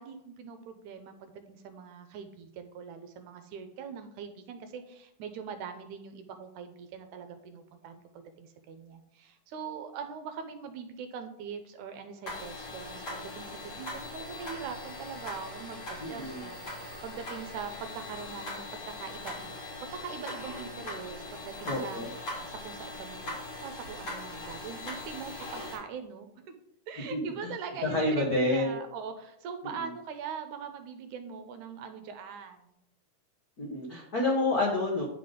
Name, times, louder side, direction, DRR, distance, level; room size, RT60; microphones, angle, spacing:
voice 1, 0.0-19.5 19.8-26.5 26.9-32.8, right 6 dB, 75° right, 7 dB, 2.0 m, -42 dB
sound 1, 12.3-25.8, left 1 dB, 45° left, 3.0 m, -41 dB
voice 2, 16.0-16.4 21.6-22.1 27.1-27.5 27.9-28.8 29.8-29.9 33.6-35.0, left 2 dB, 75° left, -2 dB, 0.8 m, -29 dB
10.0 x 4.0 x 5.0 m, 0.78 s
omnidirectional pair, 3.8 m